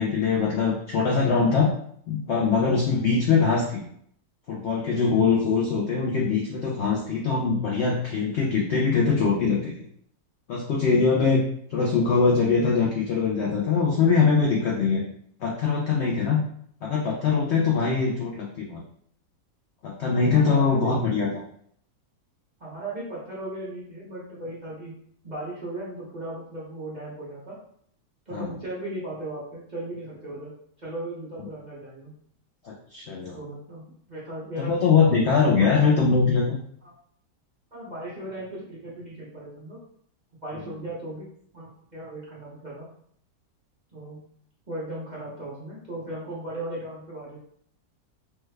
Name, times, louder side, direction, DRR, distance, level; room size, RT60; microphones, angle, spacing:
voice 1, 0.0-1.7 2.1-3.8 4.5-9.7 10.5-11.4 11.7-15.0 15.4-16.4 16.8-18.8 19.8-21.4 28.3-28.5 32.6-33.4 34.6-36.6, left 5 dB, 75° left, -3 dB, 0.6 m, -22 dB
voice 2, 20.3-21.3 22.6-25.0 25.2-27.6 28.3-30.5 30.8-32.1 33.3-35.2 35.5-35.7 36.8-36.9 37.7-39.8 40.4-41.3 41.5-42.9 43.9-44.2 44.7-47.4, right 1 dB, 40° right, -8 dB, 0.7 m, -37 dB
3.3 x 2.2 x 3.2 m, 0.66 s
omnidirectional pair, 1.8 m